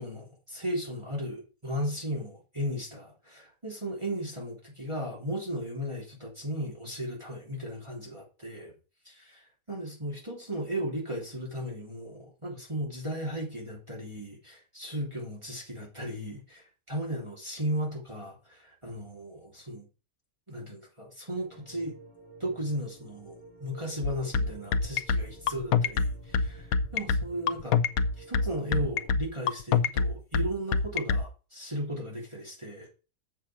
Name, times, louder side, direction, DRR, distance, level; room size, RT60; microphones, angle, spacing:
voice 1, 0.0-8.7 9.7-19.9 20.5-21.9 22.4-27.8 28.2-32.9, equal, 20° right, 3.3 m, -36 dB
sound 1, 21.3-29.1, right 1 dB, 20° left, 4.2 m, -50 dB
sound 2, 24.0-31.2, left 5 dB, 70° left, 1.2 m, -25 dB
8.3 x 6.5 x 5.9 m
omnidirectional pair, 1.6 m